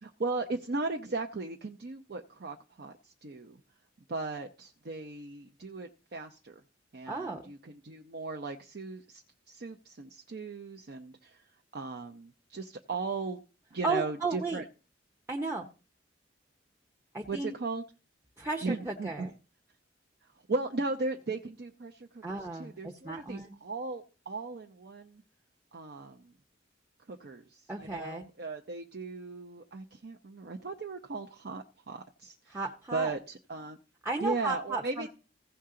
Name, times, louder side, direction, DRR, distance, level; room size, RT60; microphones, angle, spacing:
voice 1, 0.0-3.6 4.1-6.6 6.9-11.4 11.7-13.4 13.7-14.6 17.3-17.8 18.6-19.3 20.5-25.2 25.7-26.3 27.1-32.6 32.9-33.8 34.2-35.1, right 3 dB, 55° right, 0.6 m, -37 dB
voice 2, 7.1-7.4 13.8-14.6 15.3-15.7 17.1-17.5 18.4-19.3 22.2-23.6 27.7-28.3 32.5-33.1 34.0-35.1, right 3 dB, 15° right, 0.7 m, -34 dB
16.0 x 5.7 x 3.8 m
head